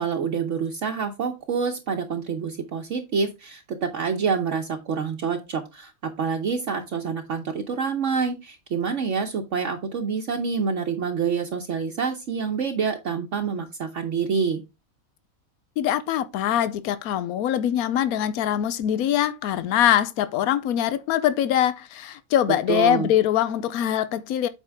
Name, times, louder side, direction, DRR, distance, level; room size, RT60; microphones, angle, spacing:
voice 1, 0.0-14.6 22.7-23.1, right 6 dB, 60° right, 1.2 m, -27 dB
voice 2, 15.8-24.5, left 11 dB, 85° left, 1.1 m, -23 dB
8.3 x 4.9 x 3.4 m
omnidirectional pair, 1.5 m